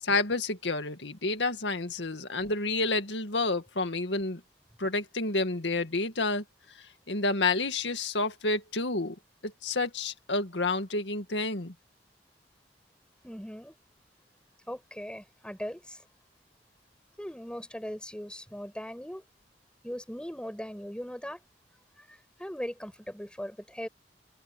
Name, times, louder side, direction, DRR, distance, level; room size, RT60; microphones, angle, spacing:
voice 1, 0.0-4.4 4.8-6.4 6.8-9.2 9.4-11.7, left 3 dB, 85° left, 2.1 m, -29 dB
voice 2, 13.2-13.7 14.7-16.0 17.2-19.2 19.8-21.4 22.0-23.9, equal, 5° left, 7.9 m, -39 dB
head